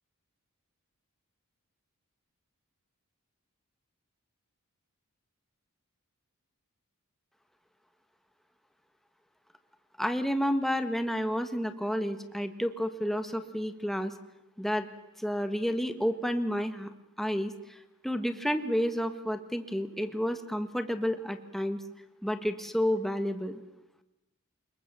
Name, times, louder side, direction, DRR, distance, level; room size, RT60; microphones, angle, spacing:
voice 1, 10.0-14.1 14.6-14.9 15.2-16.9 17.2-17.8 18.0-21.8 22.2-23.6, equal, ahead, 8 dB, 1.4 m, -30 dB
25.5 x 22.0 x 7.4 m, 0.90 s
head